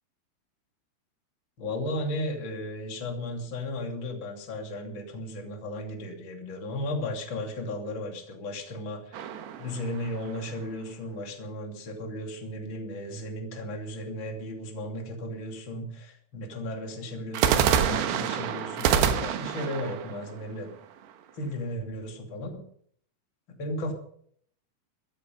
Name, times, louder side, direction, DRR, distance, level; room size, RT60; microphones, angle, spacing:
voice 1, 1.6-9.3 9.6-20.7 21.3-22.6 23.6-23.9, left 1 dB, 30° left, 2 dB, 2.5 m, -35 dB
sound 1, 9.1-10.6 17.3-21.3, right 9 dB, 70° right, 2.9 m, -27 dB
15.5 x 13.0 x 5.5 m, 0.63 s
omnidirectional pair, 5.7 m